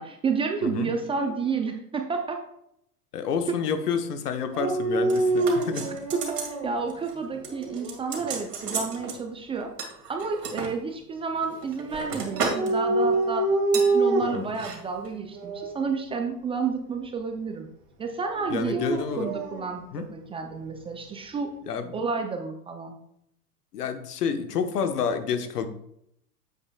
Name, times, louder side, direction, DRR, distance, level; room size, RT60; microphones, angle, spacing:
voice 1, 0.0-2.4 6.1-9.7 10.1-17.7 18.0-18.8 19.2-21.5 21.9-23.0, right 5 dB, 10° right, 4 dB, 0.5 m, -30 dB
voice 2, 0.6-1.3 3.1-6.0 14.3-14.5 18.5-19.3 19.9-20.1 21.6-21.9 23.7-25.7, left 6 dB, 75° left, 8 dB, 1.1 m, -29 dB
Dog, 4.5-6.7 7.4-8.1 12.2-14.5 15.3-15.8 18.4-19.6, right 2 dB, 50° right, 2.2 m, -26 dB
sound 1, 5.1-6.6 6.9-7.1 7.4-9.2 9.8-10.7 11.3-12.7 13.0-13.2 13.7-13.9 14.5-14.8 15.0-15.1, right 4 dB, 80° right, 2.2 m, -33 dB
8.7 x 8.1 x 2.3 m, 0.74 s
hypercardioid pair, 110°, 46 cm